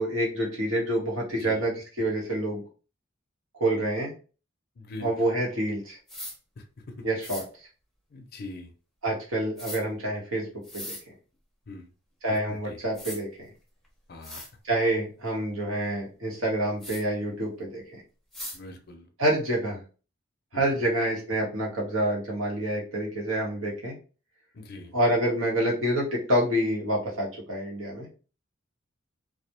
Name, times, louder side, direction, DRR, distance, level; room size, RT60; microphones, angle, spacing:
voice 1, 0.0-2.6 3.6-4.1 5.0-6.0 7.0-7.4 9.0-10.5 10.7-11.0 12.2-13.3 14.6-17.8 19.2-19.8 20.5-23.9 24.9-28.1, right 1 dB, 80° right, -2 dB, 1.0 m, -27 dB
voice 2, 4.8-5.1 6.6-6.7 8.1-8.7 11.7-11.9 12.5-12.8 14.1-14.4 18.5-19.1 20.5-20.8 24.5-24.9, left 2 dB, 50° left, 3 dB, 0.5 m, -42 dB
sound 1, 6.1-6.4 7.2-7.5 9.6-9.8 10.6-11.0 12.5-12.6 12.9-13.2 13.8-13.9 14.2-14.5 16.8-17.0 18.3-18.6, left 1 dB, ahead, 0.6 m, -38 dB
2.3 x 2.1 x 2.8 m, 0.36 s
head